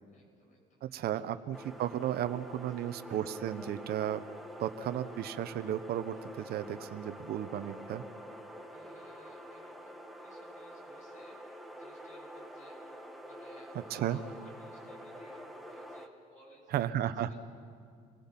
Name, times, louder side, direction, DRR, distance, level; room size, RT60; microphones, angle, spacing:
voice 1, 0.1-1.2 2.7-3.0 5.1-5.2 8.7-11.4 11.7-12.7 13.2-17.4, equal, 50° left, 0 dB, 7.4 m, -60 dB
voice 2, 0.8-4.2 4.6-8.0 13.7-14.2 16.7-17.3, right 11 dB, 70° right, 12 dB, 0.9 m, -34 dB
sound 1, 1.5-16.1, equal, ahead, 1.5 m, -47 dB
28.5 x 19.5 x 5.9 m, 2.2 s
cardioid pair, 110°, 17 cm